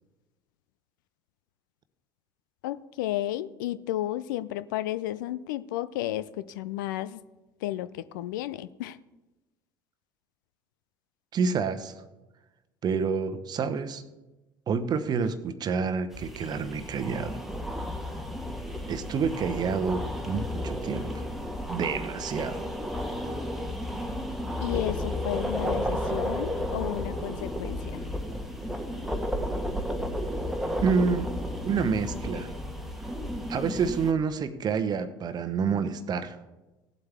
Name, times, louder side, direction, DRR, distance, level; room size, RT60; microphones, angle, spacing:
voice 1, 2.6-7.2 7.6-9.0 24.6-28.0, left 14 dB, 70° left, 15 dB, 0.4 m, -33 dB
voice 2, 11.3-11.9 12.8-14.0 14.7-17.4 18.9-21.1 21.7-22.7 30.8-31.3 31.6-32.5 33.5-36.4, right 5 dB, 40° right, 11 dB, 0.9 m, -28 dB
sound 1, 16.1-34.1, equal, ahead, 1.3 m, -33 dB
16.5 x 7.9 x 3.5 m, 1.1 s
figure-of-eight pair, 65°, 11 cm